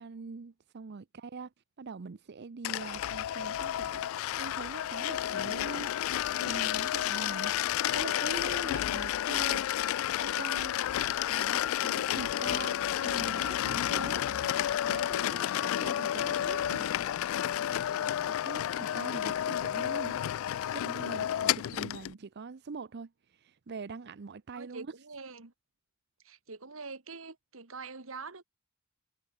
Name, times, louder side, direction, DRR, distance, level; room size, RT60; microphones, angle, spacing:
voice 1, 0.0-1.5 1.8-6.1 6.4-7.6 7.9-9.6 10.2-10.8 11.3-14.4 14.9-16.6 18.0-20.2 20.7-24.9, right 4 dB, 55° right, 0.5 m, -43 dB
sound 1, 2.6-22.1, left 11 dB, 70° left, 0.3 m, -31 dB
sound 2, 7.9-17.4, right 4 dB, 25° right, 4.8 m, -63 dB
voice 2, 16.1-16.9 21.6-21.8 24.5-25.5 26.2-28.4, right 4 dB, 70° right, 1.9 m, -45 dB
head